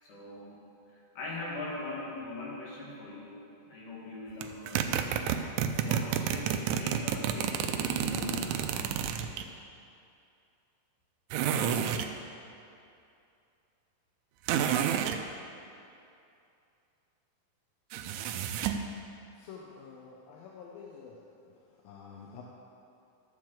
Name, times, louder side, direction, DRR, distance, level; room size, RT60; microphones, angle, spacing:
voice 1, 0.0-0.6 0.9-5.4 5.8-8.9, left 2 dB, 65° left, -5 dB, 3.3 m, -41 dB
sound 1, 4.4-9.5 11.3-12.1 14.5-15.2 17.9-18.9, right 9 dB, 85° right, 1.7 m, -30 dB
voice 2, 19.4-21.2 21.8-22.4, left 6 dB, 85° left, -2 dB, 2.5 m, -48 dB
12.0 x 4.7 x 7.4 m, 2.6 s
omnidirectional pair, 4.0 m